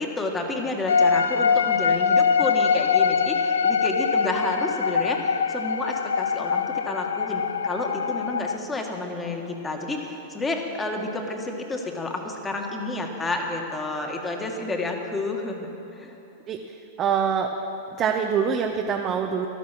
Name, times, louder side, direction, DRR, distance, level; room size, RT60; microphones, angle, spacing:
voice 1, 0.0-16.2, left 2 dB, 15° left, 2 dB, 1.9 m, -30 dB
sound 1, 0.9-8.6, left 6 dB, 90° left, 0.4 m, -23 dB
voice 2, 16.5-17.5 18.0-19.5, right 7 dB, 35° right, 3 dB, 0.9 m, -25 dB
14.5 x 12.0 x 6.1 m, 3.0 s
hypercardioid pair, 110°, 0 cm